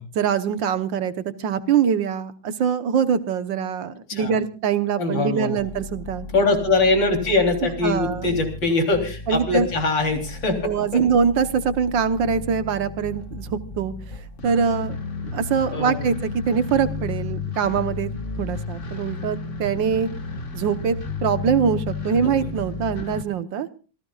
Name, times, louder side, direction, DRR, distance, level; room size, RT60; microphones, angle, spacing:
voice 1, 0.2-6.3 7.8-8.4 9.3-9.7 10.6-13.9 14.4-15.0 15.3-18.1 18.4-20.1 20.5-23.7, right 7 dB, 70° right, 11 dB, 1.7 m, -23 dB
voice 2, 5.0-5.6 6.3-11.0 15.7-16.2 22.2-22.5, left 3 dB, 65° left, 3 dB, 4.2 m, -22 dB
sound 1, 5.6-23.2, left 4 dB, 40° left, 2.0 m, -33 dB
26.5 x 17.0 x 2.4 m, 0.36 s
omnidirectional pair, 2.2 m